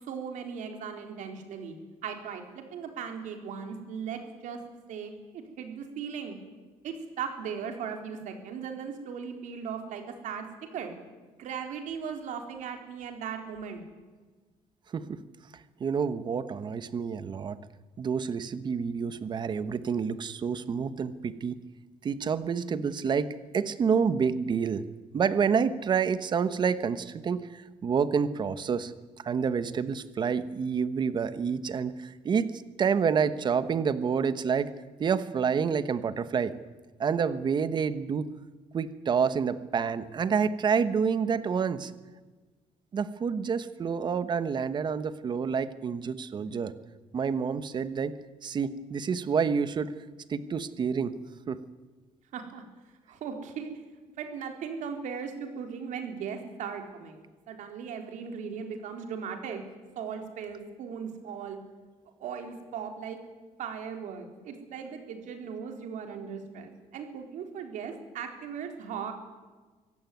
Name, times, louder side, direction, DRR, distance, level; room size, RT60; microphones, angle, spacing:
voice 1, 0.1-1.8 2.0-4.6 4.9-6.4 6.8-10.5 10.7-10.9 11.4-13.8 52.3-52.6 53.1-53.7 54.2-59.6 60.0-61.6 62.2-63.2 63.6-69.1, right 6 dB, 70° right, 5 dB, 4.1 m, -38 dB
voice 2, 14.9-15.2 15.8-17.6 18.0-21.6 22.0-24.8 25.1-32.5 32.8-34.7 35.0-36.5 37.0-38.3 38.7-41.9 42.9-46.7 47.1-48.1 48.4-49.9 50.3-51.2 51.5-51.6, right 6 dB, 35° right, 13 dB, 1.2 m, -28 dB
24.5 x 16.0 x 9.4 m, 1.3 s
cardioid pair, 165°, 13 cm